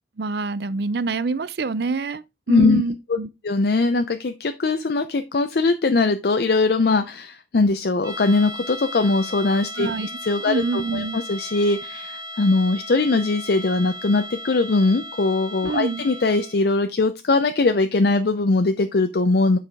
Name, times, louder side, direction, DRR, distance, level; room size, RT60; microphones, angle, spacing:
voice 1, 0.2-3.3 9.8-10.1 10.5-11.2 15.7-16.1, right 4 dB, 60° right, 0.5 m, -26 dB
voice 2, 2.5-2.8 3.4-9.9 10.2-19.6, left 3 dB, 55° left, 0.5 m, -21 dB
sound 1, 8.0-16.7, equal, 20° right, 0.7 m, -36 dB
8.2 x 4.8 x 3.4 m
head